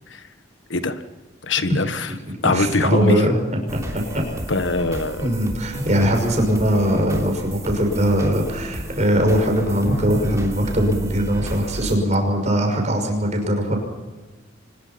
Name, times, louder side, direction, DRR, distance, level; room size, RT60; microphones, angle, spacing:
voice 1, 0.7-1.0 1.4-2.1 2.4-3.3 4.5-5.3, left 3 dB, 80° left, 10 dB, 1.5 m, -22 dB
voice 2, 2.1-4.2 5.2-13.8, equal, 40° right, 3 dB, 6.0 m, -21 dB
sound 1, 3.7-12.0, right 1 dB, 15° right, 3.4 m, -33 dB
Drum, 9.9-12.0, equal, 40° left, 6.9 m, -34 dB
24.5 x 21.0 x 5.9 m, 1.2 s
head